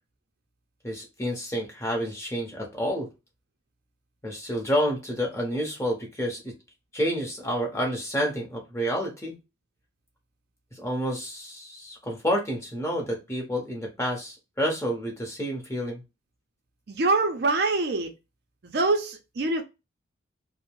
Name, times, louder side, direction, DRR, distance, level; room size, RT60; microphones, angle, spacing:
voice 1, 0.8-3.1 4.2-6.5 6.9-9.4 10.8-16.0, equal, 15° left, 0.8 m, -29 dB
voice 2, 16.9-18.1 18.6-19.6, right 3 dB, 55° right, 0.5 m, -24 dB
2.6 x 2.0 x 2.9 m
head